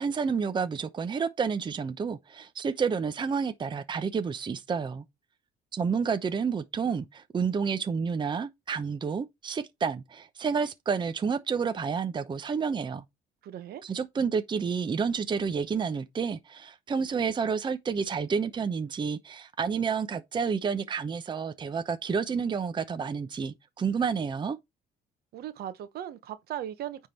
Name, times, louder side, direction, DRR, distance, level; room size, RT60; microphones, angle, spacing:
voice 1, 0.0-5.0 5.7-13.0 13.8-24.6, right 6 dB, 25° right, 0.7 m, -30 dB
voice 2, 13.4-13.8 25.3-27.1, right 11 dB, 70° right, 1.2 m, -38 dB
9.3 x 3.7 x 4.5 m
cardioid pair, 110°, 17 cm